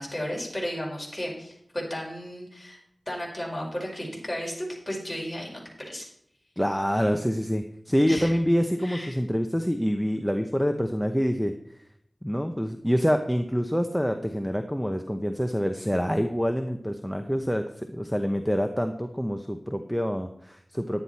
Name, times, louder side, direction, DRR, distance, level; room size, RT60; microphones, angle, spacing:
voice 1, 0.0-2.8 3.1-6.1 8.1-8.3 8.8-9.2, equal, 20° left, -2 dB, 5.1 m, -34 dB
voice 2, 6.6-11.5 12.2-17.6 17.9-21.0, equal, 5° left, 6 dB, 0.9 m, -26 dB
11.0 x 9.9 x 4.2 m, 0.71 s
wide cardioid pair, 50°, 0 cm